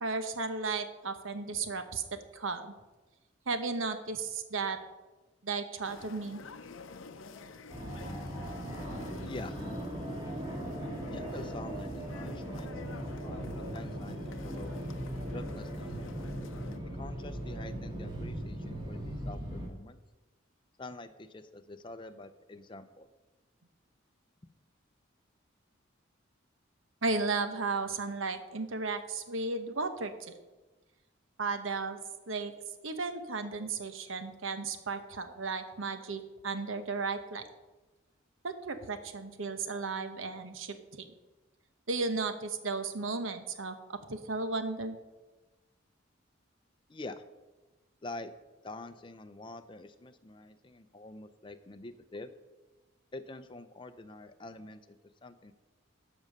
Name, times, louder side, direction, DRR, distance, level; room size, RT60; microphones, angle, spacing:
voice 1, 0.0-2.7 3.5-4.8 5.4-6.4 27.0-30.3 31.4-32.0 32.3-32.5 32.8-37.4 38.4-41.1 41.9-45.0, right 4 dB, 75° right, 9 dB, 1.0 m, -34 dB
sound 1, 5.8-16.8, left 4 dB, 75° left, 0.6 m, -49 dB
Fixed-wing aircraft airplane, 7.7-19.7, right 1 dB, 25° right, 2.1 m, -39 dB
voice 2, 9.2-9.6 11.1-14.7 15.3-15.9 16.9-20.0 20.8-23.1 46.9-47.2 48.0-48.3 48.6-52.3 53.1-55.0 55.2-55.5, left 2 dB, 25° left, 9 dB, 0.5 m, -46 dB
12.5 x 5.3 x 6.5 m, 1.2 s
head